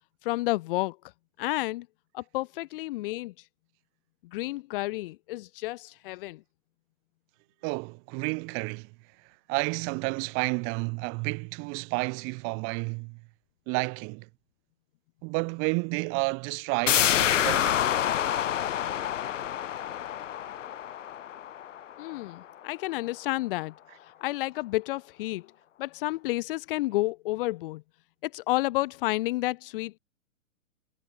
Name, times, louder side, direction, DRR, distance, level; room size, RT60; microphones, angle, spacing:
voice 1, 0.2-1.0 1.4-1.9 2.1-3.3 4.2-6.4 22.0-23.7 24.0-25.5 25.8-27.8 28.2-30.0, left 19 dB, 40° left, 3.3 m, -30 dB
voice 2, 7.6-8.9 9.5-13.2 13.7-14.3 15.2-17.8, right 36 dB, 30° right, 2.0 m, -31 dB
sound 1, 16.9-22.3 22.7-22.8, left 10 dB, 60° left, 1.0 m, -27 dB
figure-of-eight pair, 120°, 41 cm